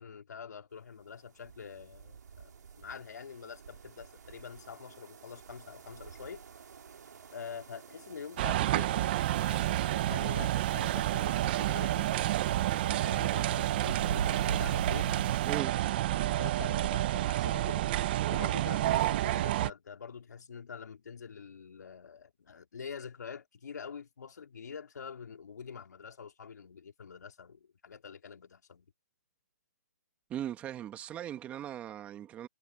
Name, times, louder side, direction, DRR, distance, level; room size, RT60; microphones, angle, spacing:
voice 1, 0.0-6.4 7.3-15.1 16.2-17.9 18.3-28.9, left 6 dB, 75° left, 4.3 m, -46 dB
sound 1, 1.4-15.6, right 6 dB, 75° right, 3.0 m, -43 dB
sound 2, 8.4-19.7, right 14 dB, 35° right, 1.0 m, -29 dB
voice 2, 30.3-32.5, right 11 dB, 15° right, 1.8 m, -39 dB
hypercardioid pair, 160°, 10 cm